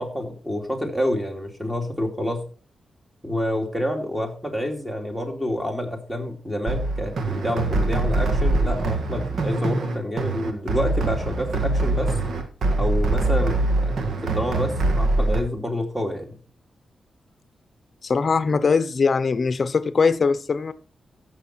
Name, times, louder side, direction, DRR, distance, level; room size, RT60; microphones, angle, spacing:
voice 1, 0.0-2.4 3.2-12.2 12.8-16.4, equal, 5° right, 2.7 m, -28 dB
sound 1, 6.7-15.4, right 2 dB, 75° right, 1.8 m, -23 dB
voice 2, 18.0-20.7, left 5 dB, 45° left, 0.7 m, -21 dB
14.5 x 6.5 x 4.4 m
wide cardioid pair, 125°, 0 cm